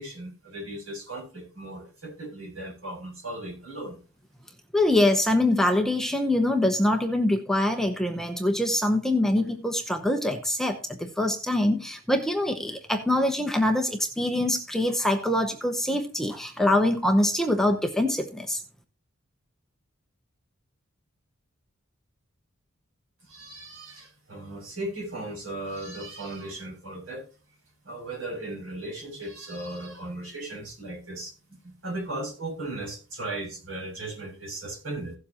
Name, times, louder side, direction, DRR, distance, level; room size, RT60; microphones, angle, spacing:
voice 1, 0.0-4.0 23.2-27.3 27.8-35.1, right 1 dB, 70° right, -2 dB, 7.0 m, -37 dB
voice 2, 4.7-18.6, left 1 dB, ahead, 4 dB, 0.8 m, -24 dB
16.5 x 7.3 x 2.9 m, 0.34 s
head